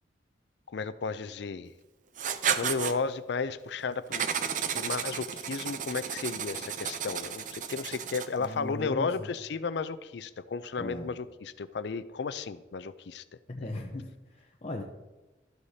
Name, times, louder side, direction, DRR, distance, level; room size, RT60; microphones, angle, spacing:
voice 1, 0.7-1.7 2.5-4.3 4.7-13.2, left 4 dB, 65° left, 13 dB, 0.5 m, -34 dB
Writing, 2.2-3.0 4.1-8.5, right 8 dB, 45° right, 0.5 m, -33 dB
voice 2, 8.4-9.3 10.8-11.1 13.5-14.8, left 1 dB, 35° left, 0 dB, 0.7 m, -38 dB
13.0 x 8.1 x 2.8 m, 1.1 s
head